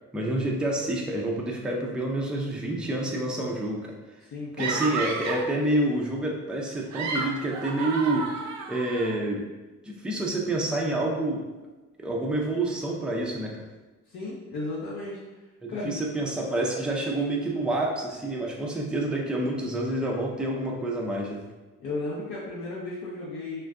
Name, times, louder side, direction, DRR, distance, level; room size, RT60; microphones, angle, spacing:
voice 1, 0.1-3.9 4.6-9.4 9.8-11.4 12.0-13.7 15.6-21.4, right 1 dB, 5° right, -2 dB, 0.4 m, -28 dB
voice 2, 4.3-4.8 14.1-15.2 15.7-16.0 21.8-23.6, left 2 dB, 60° left, -7 dB, 0.7 m, -34 dB
sound 1, 4.6-5.5 6.7-9.1, right 4 dB, 65° right, 0.5 m, -32 dB
2.4 x 2.2 x 3.5 m, 1.2 s
cardioid pair, 90°, 30 cm